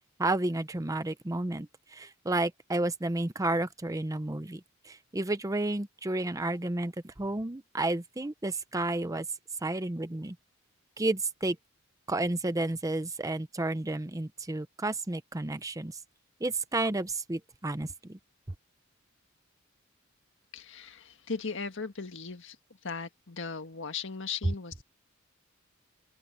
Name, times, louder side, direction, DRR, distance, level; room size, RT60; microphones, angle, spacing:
voice 1, 0.2-9.3 9.6-10.4 11.0-11.6 12.1-15.9 16.4-18.2, right 2 dB, 15° right, 0.7 m, -31 dB
voice 2, 20.5-22.6 22.8-24.8, left 5 dB, 65° left, 1.7 m, -37 dB
open air
head